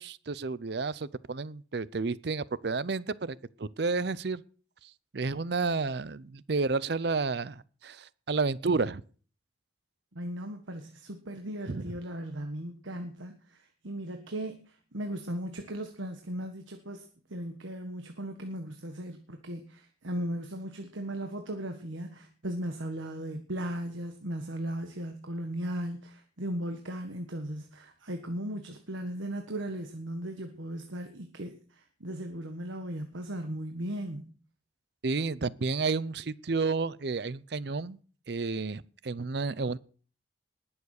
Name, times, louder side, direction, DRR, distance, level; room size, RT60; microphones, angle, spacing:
voice 1, 0.0-4.4 5.1-9.0 11.7-11.8 35.0-38.0 38.3-39.8, right 4 dB, 55° right, 0.6 m, -31 dB
voice 2, 10.1-34.3, right 1 dB, 85° right, 1.4 m, -37 dB
19.5 x 7.2 x 6.5 m
head